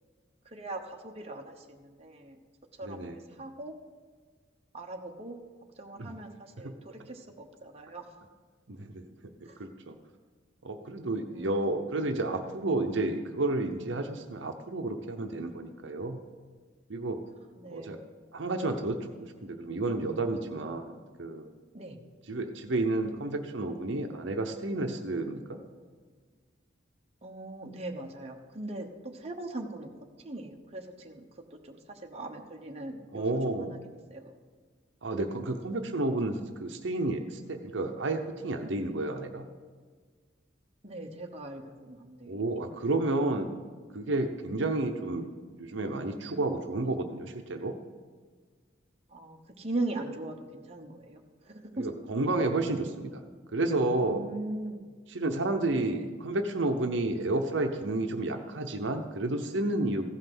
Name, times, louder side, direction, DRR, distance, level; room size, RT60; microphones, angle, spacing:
voice 1, 0.4-2.4 2.8-3.8 4.7-5.4 5.8-8.2 9.4-9.6 11.3-11.7 17.6-18.0 21.7-22.0 27.2-29.9 30.2-31.2 31.6-33.4 33.7-34.3 40.8-42.8 49.1-51.9 54.0-54.9, right 2 dB, 35° right, 2 dB, 1.0 m, -40 dB
voice 2, 2.8-3.2 6.0-6.2 6.6-6.8 8.7-9.0 9.6-10.0 10.6-16.2 16.9-17.2 17.7-18.0 18.3-21.5 22.3-25.6 33.1-33.8 35.0-39.5 42.3-43.5 43.9-47.8 51.8-53.2 53.5-54.2 55.1-60.1, right 2 dB, 70° right, 5 dB, 0.8 m, -31 dB
15.5 x 5.7 x 6.1 m, 1.5 s
head